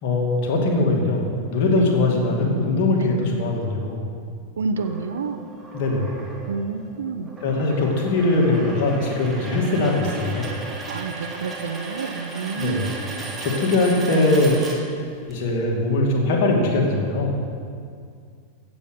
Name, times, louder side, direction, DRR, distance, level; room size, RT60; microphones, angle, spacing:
voice 1, 0.0-4.1 5.7-6.2 7.4-10.5 12.6-12.9 13.4-14.6 15.3-17.4, left 2 dB, 45° left, 0 dB, 2.5 m, -21 dB
voice 2, 4.6-5.4 6.5-7.3 10.9-12.9, right 5 dB, 65° right, 8 dB, 0.8 m, -29 dB
sound 1, 4.8-15.3, right 2 dB, 15° right, 2.1 m, -36 dB
15.0 x 7.5 x 6.7 m, 2.2 s
figure-of-eight pair, 90°, 0 cm